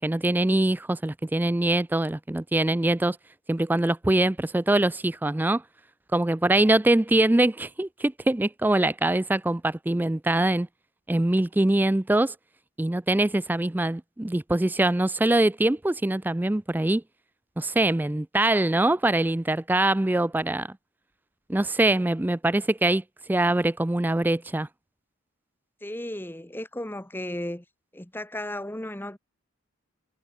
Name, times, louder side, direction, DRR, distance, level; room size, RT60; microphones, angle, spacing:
voice 1, 0.0-3.2 3.5-5.6 6.1-10.7 11.1-12.3 12.8-17.0 17.6-20.7 21.5-23.0 23.3-24.7, right 1 dB, 10° right, 0.3 m, -23 dB
voice 2, 25.8-27.6 27.9-29.2, left 1 dB, 10° left, 1.2 m, -34 dB
head